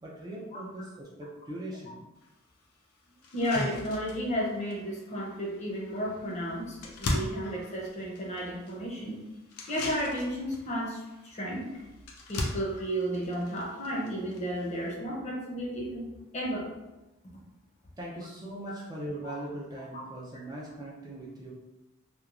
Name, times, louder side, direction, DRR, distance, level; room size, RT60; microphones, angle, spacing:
voice 1, 0.0-2.0 18.0-21.5, right 1 dB, 20° right, -4 dB, 0.4 m, -40 dB
sound 1, 2.2-2.3 2.8-2.9 3.2-14.9, left 2 dB, 85° left, 0.5 m, -39 dB
voice 2, 3.3-9.2 9.7-11.7 12.3-16.1 16.3-16.7 19.9-20.0, equal, 30° left, -3 dB, 0.6 m, -33 dB
2.9 x 2.2 x 2.4 m, 1.0 s
head